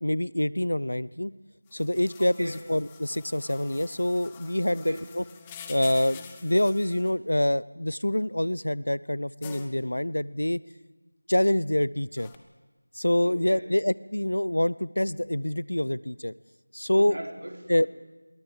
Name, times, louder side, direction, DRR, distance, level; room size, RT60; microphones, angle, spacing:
voice 1, 0.0-1.3 1.7-5.2 5.7-10.6 11.3-12.3 12.9-16.3 16.7-17.2 17.7-17.9, left 1 dB, 90° left, 20 dB, 0.7 m, -26 dB
sound 1, 1.7-7.1 9.4-9.7 12.2-12.4, left 6 dB, 5° left, 0.6 m, -47 dB
voice 2, 2.2-2.6 4.7-5.1 13.2-13.7 16.9-17.9, right 1 dB, 70° right, 2 dB, 4.0 m, -39 dB
22.0 x 17.5 x 7.5 m, 1.2 s
figure-of-eight pair, 175°, 0 cm